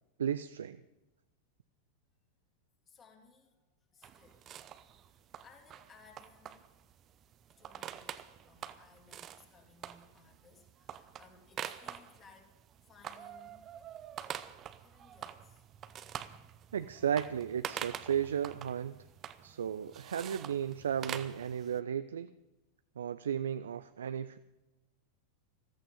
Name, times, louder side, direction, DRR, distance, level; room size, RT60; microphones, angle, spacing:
voice 1, 0.2-0.8 16.7-19.0 19.4-22.3 23.0-24.4, right 8 dB, 65° right, 13 dB, 0.4 m, -34 dB
voice 2, 2.8-3.6 3.9-4.6 5.1-6.6 7.1-7.2 7.6-12.5 12.8-13.6 14.8-15.9, left 4 dB, 25° left, 2 dB, 2.9 m, -61 dB
sound 1, 4.0-21.8, right 10 dB, 30° right, 0.7 m, -46 dB
14.5 x 14.0 x 5.5 m, 1.0 s
figure-of-eight pair, 90°, 0 cm